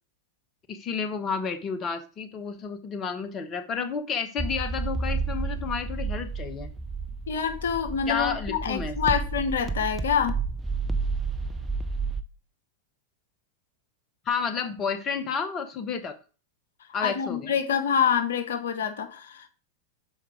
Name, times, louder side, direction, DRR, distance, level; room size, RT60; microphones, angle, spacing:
voice 1, 0.7-6.7 8.1-9.2 14.3-16.2 16.9-17.5, left 5 dB, 30° left, 9 dB, 0.7 m, -31 dB
sound 1, 4.4-12.2, right 4 dB, 15° right, 0.7 m, -31 dB
voice 2, 7.3-10.4 17.0-19.5, left 7 dB, 65° left, 7 dB, 0.9 m, -26 dB
6.4 x 4.5 x 4.9 m, 0.36 s
figure-of-eight pair, 90°, 0 cm